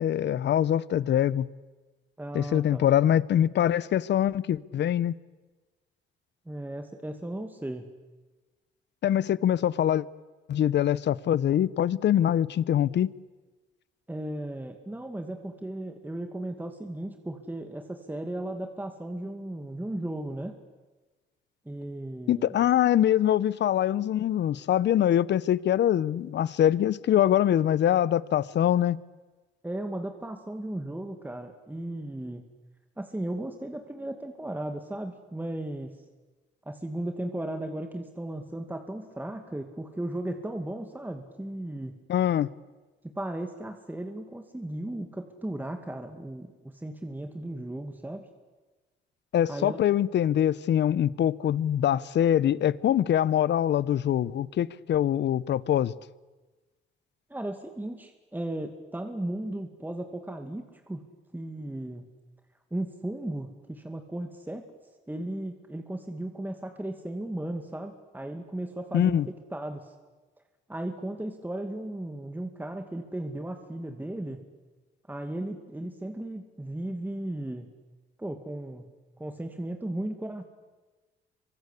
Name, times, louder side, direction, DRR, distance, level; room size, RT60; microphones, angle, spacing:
voice 1, 0.0-1.5 2.3-5.1 9.0-10.0 10.5-13.1 22.3-29.0 42.1-42.5 49.3-55.9 68.9-69.3, left 10 dB, 60° left, 0.8 m, -24 dB
voice 2, 2.2-2.9 6.5-7.9 14.1-20.6 21.7-22.5 29.6-32.4 33.0-36.0 36.7-42.0 43.0-48.3 49.5-49.8 57.3-61.0 61.3-62.1 62.7-64.6 65.1-69.2 69.5-69.9 70.7-74.5 75.1-77.7 78.2-78.9 79.2-80.4, right 1 dB, 10° right, 2.3 m, -36 dB
26.5 x 24.0 x 8.4 m
cardioid pair, 90°, 20 cm